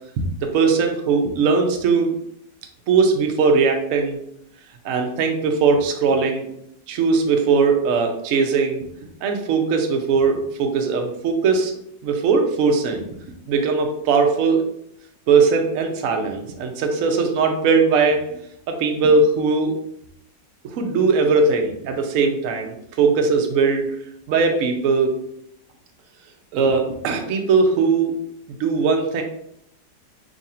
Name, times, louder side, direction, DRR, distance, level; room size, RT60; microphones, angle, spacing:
voice 1, 0.2-2.1 2.9-4.2 4.8-6.5 6.9-8.8 9.2-11.7 12.0-13.1 13.5-14.6 15.3-18.2 18.7-19.8 20.6-23.9 24.3-25.2 26.5-28.1 28.6-29.2, right 4 dB, 70° right, 3 dB, 0.7 m, -19 dB
3.0 x 2.5 x 4.2 m, 0.75 s
omnidirectional pair, 2.0 m